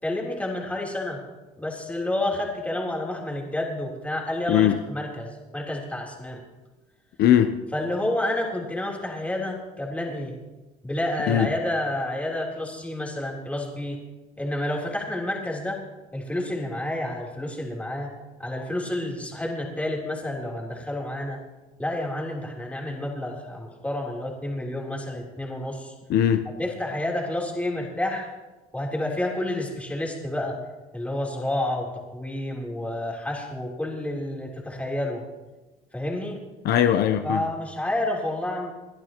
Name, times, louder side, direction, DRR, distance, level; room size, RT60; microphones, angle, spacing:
voice 1, 0.0-1.2 1.6-6.4 7.7-10.3 10.8-14.0 14.4-15.8 16.1-18.1 18.4-21.4 21.8-25.9 26.6-28.3 28.7-30.6 30.9-35.2 35.9-36.4 37.2-38.7, left 1 dB, 10° left, -2 dB, 3.5 m, -29 dB
voice 2, 7.2-7.6 11.3-11.5 26.1-26.5 36.6-37.5, left 10 dB, 70° left, 8 dB, 0.8 m, -20 dB
29.0 x 11.0 x 3.0 m, 1.2 s
cardioid pair, 110°, 17 cm